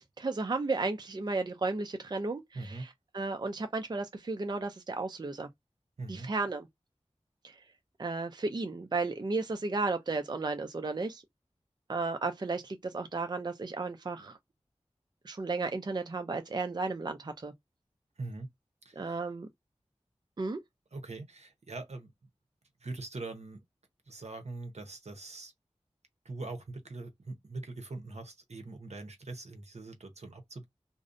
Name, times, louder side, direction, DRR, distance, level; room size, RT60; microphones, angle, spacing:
voice 1, 0.0-2.9 3.1-5.5 6.1-6.7 7.4-7.6 8.0-11.2 11.9-14.4 15.2-17.5 19.0-19.5 20.4-20.6, right 3 dB, 40° right, 0.4 m, -34 dB
voice 2, 2.5-2.9 6.0-6.3 18.2-18.5 18.8-19.2 20.9-22.1 22.8-23.6 24.1-25.5 26.2-30.6, right 2 dB, 70° right, 0.8 m, -42 dB
2.5 x 2.0 x 2.5 m
wide cardioid pair, 60°, 12 cm